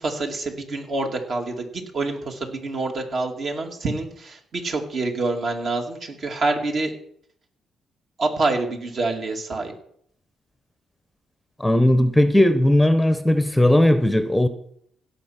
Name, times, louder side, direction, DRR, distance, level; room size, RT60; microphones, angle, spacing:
voice 1, 0.0-6.9 8.2-9.7, right 3 dB, 50° right, 3 dB, 2.4 m, -26 dB
voice 2, 11.6-14.5, left 1 dB, 5° left, 10 dB, 0.8 m, -17 dB
16.5 x 6.0 x 5.9 m, 0.67 s
cardioid pair, 90°, 0 cm